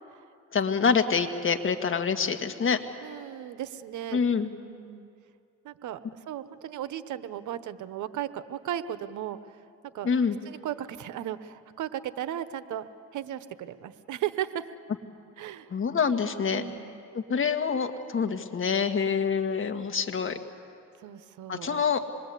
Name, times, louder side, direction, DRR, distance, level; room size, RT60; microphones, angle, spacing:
voice 1, 0.5-2.8 4.1-4.5 10.0-10.4 15.7-16.6 17.1-20.4 21.5-22.0, left 6 dB, 45° left, 6 dB, 1.7 m, -26 dB
voice 2, 3.0-4.2 4.6-5.1 5.6-9.4 9.9-10.1 10.5-12.9 13.1-14.7 15.4-15.7 16.5-17.1 21.0-21.8, right 11 dB, 75° right, 13 dB, 1.0 m, -36 dB
26.5 x 21.5 x 8.3 m, 2.5 s
cardioid pair, 90°, 30 cm